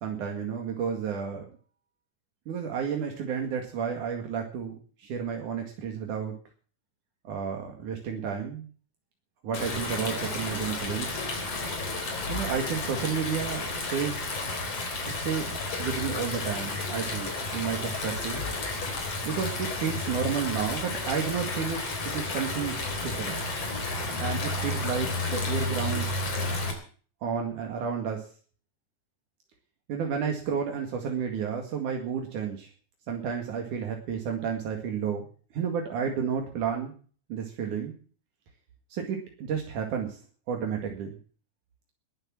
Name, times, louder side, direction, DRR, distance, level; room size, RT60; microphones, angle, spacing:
voice 1, 0.0-1.5 2.5-6.4 7.3-8.7 9.4-11.2 12.3-14.3 15.1-15.5 15.8-18.5 19.3-23.4 24.2-26.1 27.2-28.3 29.9-32.7 33.1-35.3 35.5-36.9 37.3-37.9 38.9-40.2 40.5-41.2, right 7 dB, 80° right, 2 dB, 3.5 m, -31 dB
Stream, 9.5-26.7, left 2 dB, 50° left, 4.7 m, -32 dB
20.5 x 8.0 x 7.6 m, 0.42 s
omnidirectional pair, 3.5 m